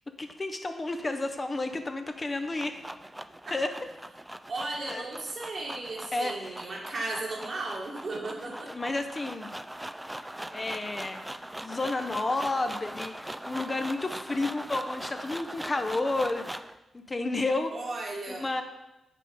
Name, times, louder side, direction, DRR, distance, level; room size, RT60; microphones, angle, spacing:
voice 1, 0.2-2.8 3.5-3.7 4.9-5.0 6.1-6.5 8.7-9.5 10.5-11.2 11.6-16.5 16.9-17.7 18.3-18.6, left 2 dB, 35° left, 6 dB, 0.6 m, -31 dB
sound 1, 2.2-16.8, right 1 dB, 10° right, 0.3 m, -41 dB
voice 2, 4.5-8.7 17.7-18.5, right 2 dB, 55° right, -1 dB, 1.6 m, -35 dB
5.5 x 3.9 x 5.2 m, 0.99 s
supercardioid pair, 50°, 0 cm